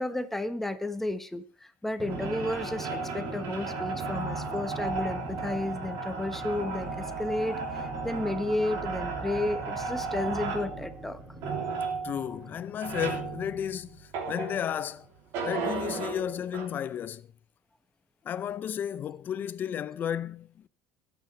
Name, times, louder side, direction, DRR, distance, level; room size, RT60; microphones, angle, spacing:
voice 1, 0.0-1.4 1.8-11.2, left 2 dB, 5° left, 1.4 m, -32 dB
Drum, 2.0-13.0, right 1 dB, 25° right, 7.7 m, -43 dB
sound 1, 2.1-14.9 15.3-16.7, right 4 dB, 70° right, 3.4 m, -35 dB
voice 2, 12.0-15.1 15.4-17.3 18.2-20.7, left 9 dB, 45° left, 0.6 m, -33 dB
23.0 x 9.1 x 3.4 m
supercardioid pair, 105°, 5 cm